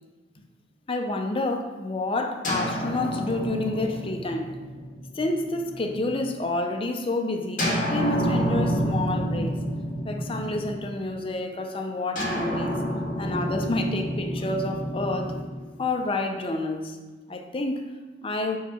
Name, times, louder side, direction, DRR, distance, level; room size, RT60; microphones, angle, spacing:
voice 1, 0.9-4.6 5.1-9.6 10.0-12.8 13.2-15.4 15.8-17.0 17.3-18.6, left 2 dB, 30° left, 0.5 m, -29 dB
sound 1, 2.4-6.2 7.6-11.1 12.1-16.3, equal, 45° left, 1.5 m, -29 dB
4.7 x 4.6 x 5.6 m
head